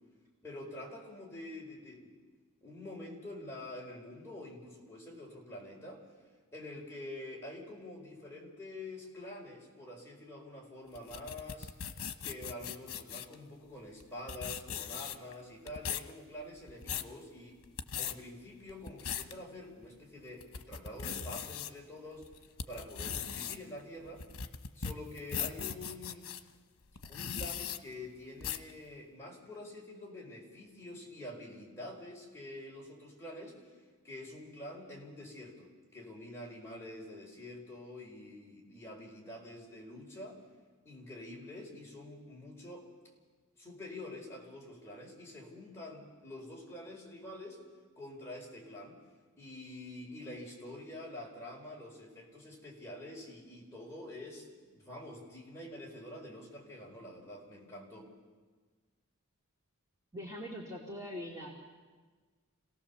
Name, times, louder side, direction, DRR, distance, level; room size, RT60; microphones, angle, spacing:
voice 1, 0.4-2.1 2.6-6.0 6.5-11.7 12.2-17.6 18.0-22.2 22.7-24.2 24.7-26.3 27.1-33.7 34.0-40.4 40.8-42.9 43.5-47.6 48.0-49.0 49.4-58.1, left 1 dB, 10° left, -3 dB, 4.7 m, -47 dB
sound 1, 10.9-13.3 14.0-14.1 14.3-15.3 15.7-16.1 16.6-17.1 17.6-18.1 18.7-19.3 19.8-19.9 20.4-21.7 22.2-26.4 27.0-27.8 28.4-28.7, left 7 dB, 85° left, 1.1 m, -39 dB
voice 2, 60.1-61.5, equal, 15° right, -4 dB, 2.6 m, -42 dB
28.0 x 17.5 x 7.1 m, 1.4 s
head